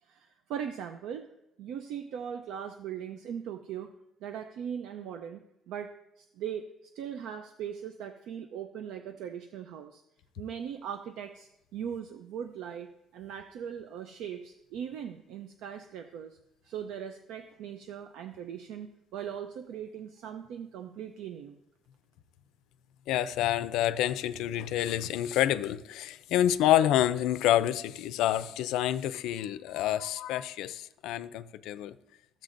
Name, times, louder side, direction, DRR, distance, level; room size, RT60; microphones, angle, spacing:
voice 1, 0.0-1.3 1.6-3.9 4.2-10.0 10.4-16.4 16.6-21.6 29.4-29.8, right 8 dB, 80° right, 0.5 m, -40 dB
voice 2, 23.1-31.9, left 12 dB, 90° left, 0.4 m, -28 dB
14.5 x 7.4 x 2.6 m
cardioid pair, 160°, 0 cm